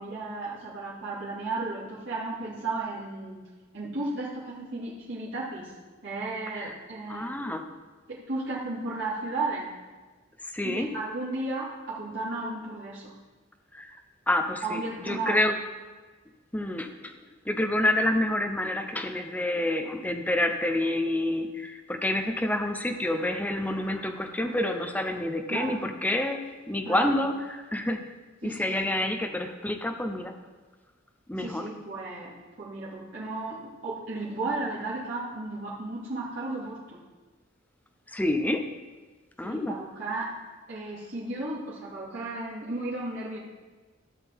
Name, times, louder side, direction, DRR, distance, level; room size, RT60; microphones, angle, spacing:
voice 1, 0.0-3.4 3.7-5.7 6.0-7.4 8.1-9.7 10.6-13.1 14.6-15.5 25.5-25.8 26.8-27.1 28.4-28.7 31.4-37.0 39.4-40.3 40.7-43.4, right 2 dB, 65° right, -9 dB, 2.4 m, -34 dB
voice 2, 7.1-7.6 10.5-10.9 13.7-13.9 14.3-15.5 16.5-17.1 17.5-26.4 26.7-28.0 28.4-30.3 31.3-31.7 38.1-38.6 39.4-39.8, left 1 dB, 10° left, 4 dB, 0.7 m, -28 dB
13.0 x 6.6 x 3.6 m, 1.3 s
head